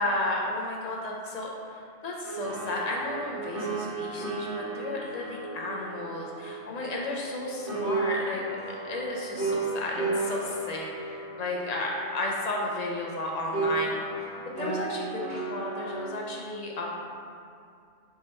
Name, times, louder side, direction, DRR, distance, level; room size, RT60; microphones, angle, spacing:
voice 1, 0.0-8.4 8.8-16.9, left 2 dB, 60° left, -2 dB, 0.4 m, -33 dB
sound 1, 2.2-7.4 7.7-13.1 13.5-16.0, right 3 dB, 80° right, 1.2 m, -34 dB
3.5 x 2.8 x 4.2 m, 2.4 s
omnidirectional pair, 1.2 m